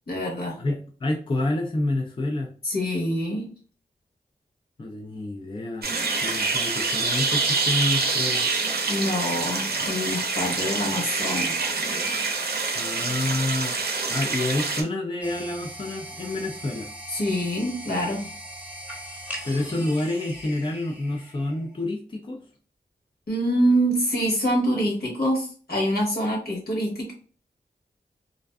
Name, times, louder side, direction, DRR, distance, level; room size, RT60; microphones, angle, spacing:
voice 1, 0.1-0.6 2.6-3.5 8.9-11.7 17.1-18.3 23.3-27.1, equal, 65° left, -2 dB, 1.2 m, -25 dB
voice 2, 0.6-2.5 4.8-5.9 6.2-8.5 12.7-16.9 19.4-22.4, left 2 dB, 30° left, 1 dB, 0.4 m, -28 dB
sound 1, 5.8-14.8, right 4 dB, 65° right, 0.6 m, -26 dB
sound 2, 15.2-21.8, equal, 10° right, 0.9 m, -40 dB
2.6 x 2.2 x 2.2 m, 0.39 s
cardioid pair, 50°, 17 cm